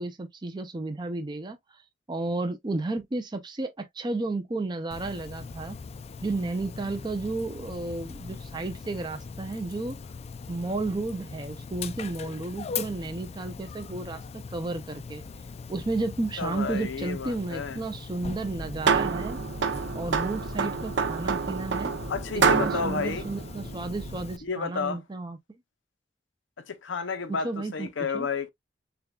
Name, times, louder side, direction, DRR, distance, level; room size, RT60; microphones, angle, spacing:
voice 1, 0.0-1.8 2.1-5.8 6.2-10.0 10.5-15.2 15.7-19.4 19.9-21.9 22.3-25.4 27.3-27.9 28.1-28.3, right 2 dB, 25° right, 0.5 m, -32 dB
Dog, 4.9-24.4, left 5 dB, 35° left, 0.3 m, -40 dB
voice 2, 16.4-17.8 22.1-23.2 24.4-25.0 26.7-28.5, left 5 dB, 85° left, 0.7 m, -31 dB
sound 1, 18.4-24.3, right 5 dB, 65° right, 0.6 m, -28 dB
6.8 x 2.3 x 2.3 m
head